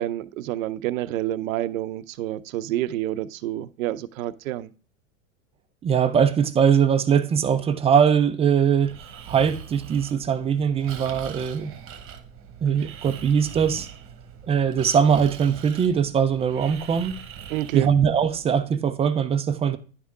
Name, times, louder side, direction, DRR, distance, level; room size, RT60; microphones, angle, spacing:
voice 1, 0.0-4.7 17.5-17.9, right 14 dB, 75° right, 0.6 m, -28 dB
voice 2, 5.8-8.9 9.3-11.7 12.6-13.9 14.4-17.2 17.7-19.8, right 7 dB, 15° right, 0.4 m, -21 dB
Breathing, 8.8-18.5, right 8 dB, 30° right, 1.1 m, -41 dB
10.5 x 3.6 x 3.6 m
hypercardioid pair, 110°, 41 cm